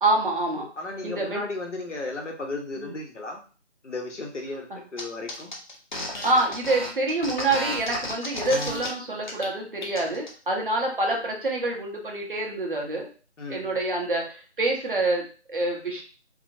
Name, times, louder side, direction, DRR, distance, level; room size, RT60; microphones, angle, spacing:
voice 1, 0.0-0.7 1.0-1.4 2.8-2.9 4.7-4.8 6.2-13.1 13.5-16.0, right 2 dB, 45° right, 0 dB, 0.9 m, -26 dB
voice 2, 0.8-3.4 3.8-5.5 13.4-13.8, left 2 dB, 80° left, 1 dB, 1.0 m, -34 dB
sound 1, 5.0-5.1 5.3-8.9 9.2-9.5 9.8-10.3, left 1 dB, 40° left, 0.7 m, -32 dB
2.8 x 2.6 x 2.6 m, 0.36 s
figure-of-eight pair, 160°, 35 cm